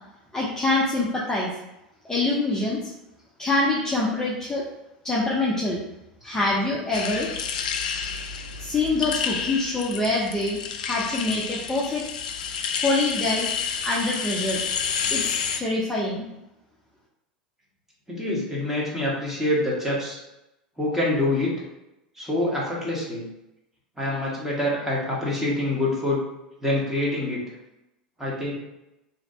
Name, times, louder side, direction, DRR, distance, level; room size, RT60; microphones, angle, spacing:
voice 1, 0.3-1.5 2.0-2.8 3.4-4.6 5.0-5.8 6.2-7.3 8.6-12.0 12.8-14.6 15.1-16.3, left 2 dB, 10° left, -5 dB, 0.7 m, -25 dB
sound 1, 6.9-15.6, left 7 dB, 65° left, 0.3 m, -29 dB
voice 2, 18.1-20.2 20.8-21.5 22.2-23.2 24.0-26.2 26.6-27.4 28.2-28.5, left 1 dB, 10° right, -5 dB, 1.4 m, -26 dB
3.0 x 2.8 x 4.2 m, 0.91 s
figure-of-eight pair, 80°, 5 cm